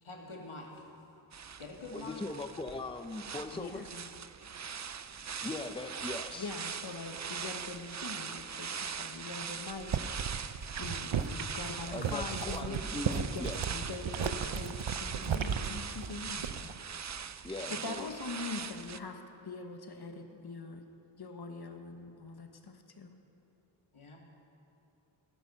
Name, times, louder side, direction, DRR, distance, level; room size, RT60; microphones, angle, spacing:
voice 1, 0.0-1.3 1.6-2.2 23.9-24.2, left 3 dB, 85° left, 0 dB, 2.2 m, -46 dB
sound 1, 1.3-19.0, right 7 dB, 35° right, 0.5 m, -41 dB
voice 2, 1.9-3.8 5.4-6.5 11.9-13.6 17.4-18.1, left 2 dB, 10° left, 8 dB, 0.6 m, -40 dB
voice 3, 3.5-4.1 6.4-16.7 17.7-20.9 21.2-23.2, left 4 dB, 50° left, 5 dB, 1.2 m, -43 dB
sound 2, 9.7-16.8 17.1-17.5, right 7 dB, 65° right, 0.7 m, -35 dB
17.0 x 10.0 x 6.8 m, 2.8 s
wide cardioid pair, 65°, 49 cm